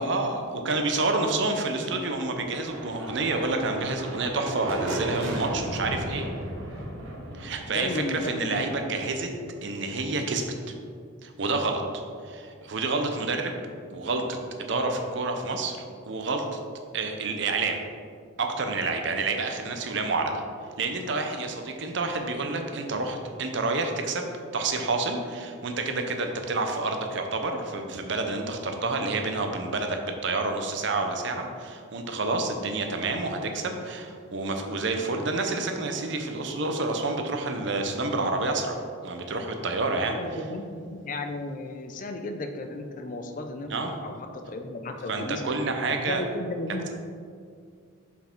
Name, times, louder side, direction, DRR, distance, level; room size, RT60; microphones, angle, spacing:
voice 1, 0.0-6.3 7.4-9.3 9.6-10.5 11.2-11.8 12.2-13.6 13.9-15.8 16.1-16.6 16.9-17.8 18.4-20.4 20.8-24.3 24.5-40.2 43.7-43.9 45.1-46.2, right 3 dB, 60° right, 4 dB, 0.6 m, -29 dB
sound 1, 1.7-9.5, right 1 dB, 85° right, 1.1 m, -36 dB
voice 2, 7.7-8.9 39.9-45.4 45.9-46.9, left 2 dB, 40° left, 5 dB, 0.5 m, -34 dB
5.4 x 4.6 x 4.5 m, 2.2 s
head